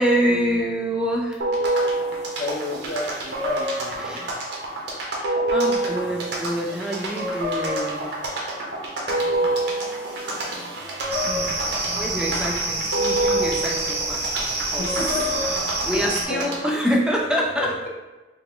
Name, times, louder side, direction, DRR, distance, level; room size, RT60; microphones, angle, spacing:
voice 1, 0.0-1.4 4.0-4.3 5.0-8.1 10.5-10.7 11.2-15.2 15.7-17.9, equal, 5° right, -2 dB, 0.4 m, -26 dB
sound 1, 1.4-16.8, right 1 dB, 80° right, 0.9 m, -27 dB
voice 2, 2.4-4.1 9.0-9.5 14.8-15.5 15.8-16.0 16.3-16.5 17.6-17.7, left 1 dB, 55° left, 0 dB, 0.6 m, -31 dB
sound 2, 11.1-16.2, right 2 dB, 35° right, 0.7 m, -28 dB
4.4 x 2.1 x 3.7 m, 1.2 s
head